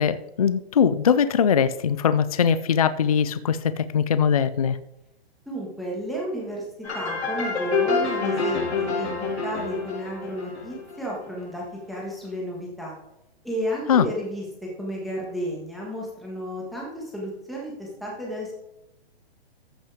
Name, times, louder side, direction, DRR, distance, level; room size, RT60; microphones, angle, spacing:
voice 1, 0.0-4.8 13.9-14.1, left 7 dB, 35° left, 15 dB, 0.4 m, -21 dB
voice 2, 5.5-6.6 6.9-12.9 13.4-14.4 14.8-18.5, equal, ahead, -4 dB, 1.7 m, -32 dB
sound 1, 6.8-11.4, left 4 dB, 85° left, 4.2 m, -27 dB
14.0 x 5.8 x 5.0 m, 0.89 s
hypercardioid pair, 175°, 32 cm